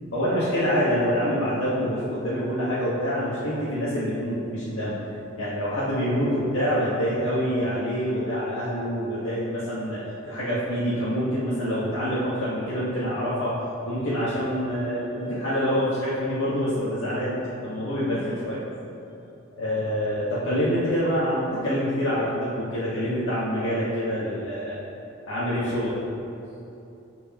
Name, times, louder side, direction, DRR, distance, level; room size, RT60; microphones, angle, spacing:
voice 1, 0.1-4.9 5.4-10.0 10.3-13.5 13.9-17.3 17.6-18.6 19.5-24.8 25.3-25.9, equal, 70° left, -10 dB, 1.4 m, -26 dB
13.0 x 4.7 x 3.0 m, 2.8 s
head